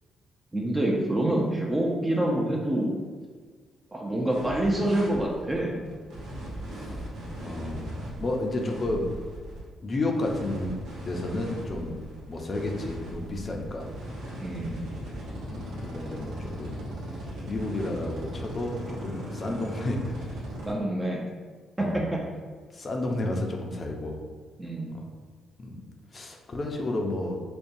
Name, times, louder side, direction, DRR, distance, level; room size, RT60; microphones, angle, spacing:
voice 1, 0.5-2.9 3.9-5.8 6.9-7.0 14.4-14.8 20.7-21.2 21.8-22.2 24.6-24.9, right 1 dB, 15° right, -2 dB, 0.5 m, -26 dB
sound 1, 4.3-20.7, right 1 dB, 80° right, 0.9 m, -38 dB
voice 2, 7.4-9.1 9.8-10.8 11.0-12.0 12.3-13.9 15.4-16.8 17.5-20.3 21.8-22.0 22.7-24.2 24.9-25.1 25.6-25.8 26.1-27.4, left 2 dB, 40° left, 1 dB, 0.5 m, -31 dB
5.1 x 2.2 x 2.6 m, 1.5 s
cardioid pair, 90°, 0 cm